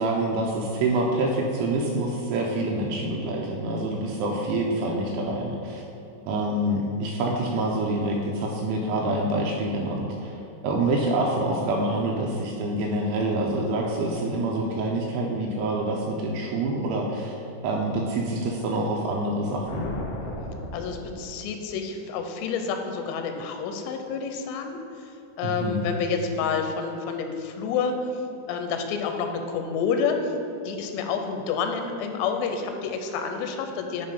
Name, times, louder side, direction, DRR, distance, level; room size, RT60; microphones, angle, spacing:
voice 1, 0.0-5.8 6.2-10.4 10.6-17.4 17.6-19.9 25.4-25.8, right 2 dB, 80° right, -1 dB, 3.0 m, -26 dB
sound 1, 19.3-21.8, left 1 dB, 75° left, 3.2 m, -36 dB
voice 2, 20.7-24.8 25.4-27.9 28.5-30.3 30.6-34.1, left 6 dB, 90° left, 5 dB, 3.3 m, -29 dB
9.8 x 3.9 x 5.2 m, 2.8 s
omnidirectional pair, 5.8 m